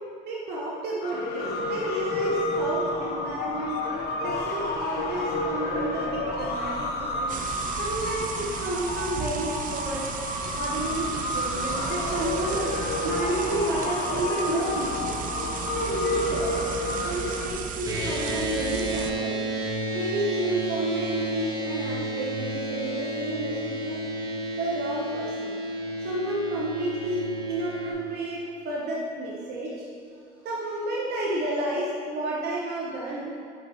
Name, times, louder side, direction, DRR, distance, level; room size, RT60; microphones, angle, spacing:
voice 1, 0.3-3.8 4.2-7.3 7.8-10.1 10.6-12.7 13.0-15.2 15.7-16.6 17.0-19.5 19.9-24.0 24.6-25.5 26.0-29.7 30.4-33.3, right 1 dB, 70° right, -4 dB, 1.0 m, -31 dB
sound 1, 1.0-17.5, left 2 dB, 70° left, 0.8 m, -30 dB
sound 2, 7.3-19.1, right 7 dB, 55° right, 0.5 m, -35 dB
sound 3, 17.8-27.9, right 1 dB, 25° right, 1.1 m, -31 dB
6.6 x 5.4 x 3.0 m, 2.2 s
cardioid pair, 110°, 17 cm